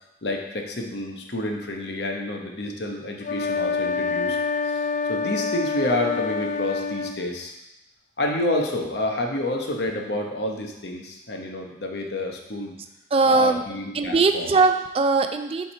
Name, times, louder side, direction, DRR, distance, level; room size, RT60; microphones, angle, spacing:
voice 1, 0.2-4.4 4.6-7.5 8.2-12.8 13.2-14.6, left 1 dB, 70° left, 1 dB, 0.9 m, -29 dB
sound 1, 3.2-7.2, left 5 dB, 45° left, 0.4 m, -26 dB
voice 2, 13.1-13.6 13.9-15.7, right 3 dB, 30° right, 7 dB, 0.3 m, -20 dB
7.2 x 3.5 x 4.3 m, 0.92 s
head